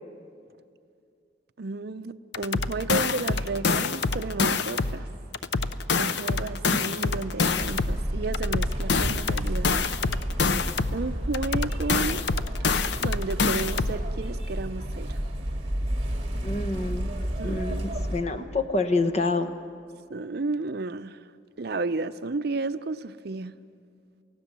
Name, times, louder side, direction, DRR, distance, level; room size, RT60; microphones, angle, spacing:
voice 1, 1.6-5.1 6.0-9.9 10.9-12.2 13.0-15.2 17.4-17.6 20.1-21.2 21.6-23.5, right 3 dB, 55° right, 0.6 m, -32 dB
sound 1, 2.3-5.0 5.3-8.0 8.3-11.0 11.3-14.0, left 4 dB, 65° left, 0.7 m, -26 dB
sound 2, 7.4-18.2, equal, 30° right, 2.5 m, -31 dB
voice 2, 16.4-17.1 17.4-19.5, left 3 dB, 35° left, 1.0 m, -27 dB
28.5 x 16.5 x 7.5 m
head